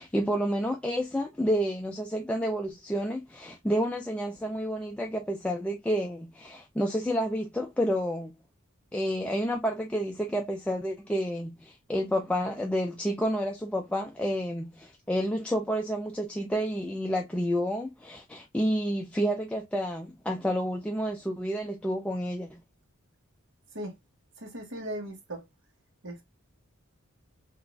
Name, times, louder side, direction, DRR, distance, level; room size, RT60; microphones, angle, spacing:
voice 1, 0.0-8.3 8.9-22.6, equal, 5° left, 0.3 m, -30 dB
voice 2, 24.4-25.4 26.0-26.2, right 1 dB, 60° right, 1.0 m, -37 dB
3.8 x 2.4 x 2.3 m
head